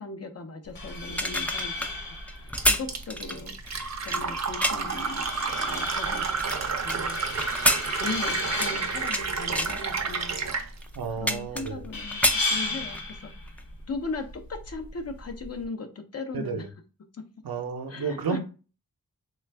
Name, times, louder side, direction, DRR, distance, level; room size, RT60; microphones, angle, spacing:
voice 1, 0.0-3.6 4.0-6.4 6.8-7.2 7.9-10.5 11.2-12.2 12.5-13.3 13.9-16.6 17.1-17.2 17.9-18.4, left 3 dB, 45° left, 0.7 m, -38 dB
sound 1, 0.6-15.6, left 2 dB, 75° left, 1.0 m, -35 dB
sound 2, 1.0-5.0 5.6-7.0 7.4-9.2 9.5-9.8 10.4-10.5 10.8-11.9 12.1-13.1 13.5-13.6, equal, 5° left, 0.4 m, -28 dB
Fill (with liquid), 2.6-10.7, right 5 dB, 50° right, 0.6 m, -30 dB
voice 2, 10.9-11.8 16.3-16.7 17.4-18.4, right 6 dB, 85° right, 0.7 m, -32 dB
3.2 x 2.3 x 3.3 m
wide cardioid pair, 80°, 35 cm